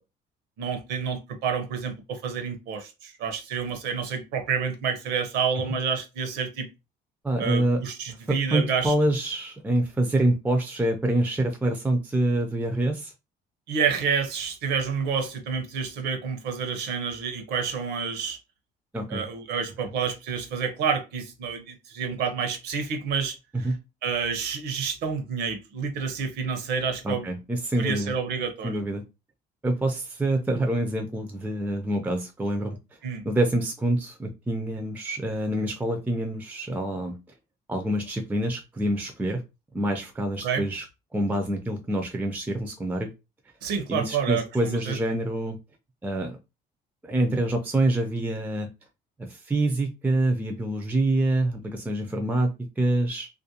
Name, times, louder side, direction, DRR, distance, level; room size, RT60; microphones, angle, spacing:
voice 1, 0.6-6.7 7.4-8.9 13.7-18.4 19.1-23.7 24.0-27.2 27.8-28.8 33.0-33.2 40.4-40.6 43.6-45.2, right 6 dB, 80° right, 0.7 m, -29 dB
voice 2, 7.2-7.8 8.3-13.1 18.9-19.2 23.6-23.8 27.0-28.1 28.6-29.0 29.6-32.8 33.2-37.2 37.7-39.4 39.7-40.9 41.1-43.1 43.9-45.6 46.0-46.4 47.0-48.7 49.2-53.3, right 1 dB, 10° right, 0.4 m, -26 dB
2.4 x 2.1 x 2.7 m
cardioid pair, 110°, 17 cm